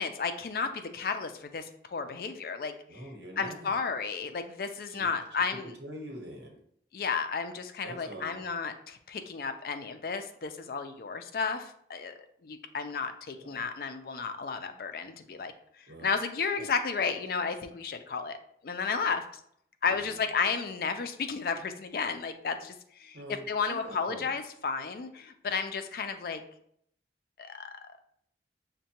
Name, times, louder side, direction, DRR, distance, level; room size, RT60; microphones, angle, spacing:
voice 1, 0.0-2.7 3.4-5.7 6.9-12.1 12.4-15.5 16.0-18.4 18.6-19.2 19.8-22.7 23.0-23.2 23.5-26.4 27.4-27.7, left 5 dB, 55° left, 7 dB, 0.4 m, -33 dB
voice 2, 2.9-3.8 4.9-5.1 5.5-6.6 7.8-8.4 13.4-13.7 15.9-16.1 16.6-16.7 19.9-20.2 23.1-24.3, equal, 85° right, 1 dB, 1.0 m, -44 dB
6.2 x 2.2 x 2.8 m, 0.68 s
head